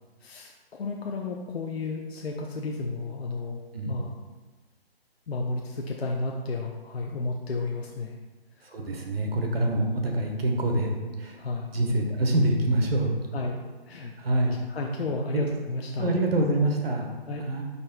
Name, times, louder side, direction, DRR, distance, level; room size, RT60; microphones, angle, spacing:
voice 1, 0.2-4.1 5.3-8.2 8.6-8.7 11.4-11.7 13.3-14.4 14.7-16.1 17.3-17.5, left 3 dB, 75° left, 0 dB, 0.7 m, -32 dB
voice 2, 3.7-4.0 8.6-11.4 11.7-13.1 14.2-14.6 15.3-15.4 16.0-17.1 17.4-17.6, right 1 dB, 70° right, 2 dB, 1.3 m, -26 dB
9.6 x 4.3 x 2.3 m, 1.3 s
hypercardioid pair, 165°, 31 cm